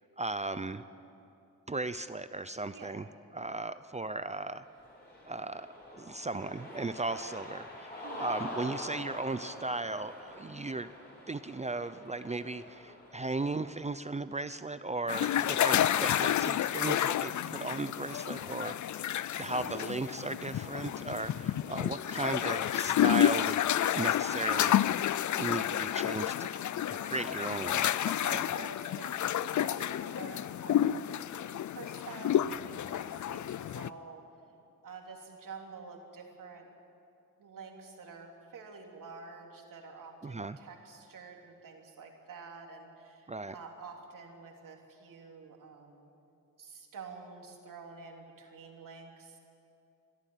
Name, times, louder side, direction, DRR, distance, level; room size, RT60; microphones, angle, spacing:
voice 1, 0.2-0.8 1.7-3.1 3.3-4.7 5.3-5.7 5.9-10.9 11.3-19.0 19.4-23.6 24.0-24.7 25.4-26.5 26.9-28.4 40.2-40.6 43.3-43.5, right 2 dB, 20° right, 12 dB, 0.5 m, -36 dB
voice 2, 2.7-3.0 8.0-8.3 19.3-19.9 24.4-24.9 27.9-31.0 31.6-34.2 34.8-36.7 37.4-46.1 46.6-49.4, right 4 dB, 70° right, 1 dB, 3.2 m, -48 dB
Cheering, 4.6-13.9, left 1 dB, 30° left, 5.1 m, -45 dB
sound 1, 15.1-33.9, left 11 dB, 60° left, 0.5 m, -30 dB
23.0 x 13.5 x 9.2 m, 2.6 s
wide cardioid pair, 105°, 33 cm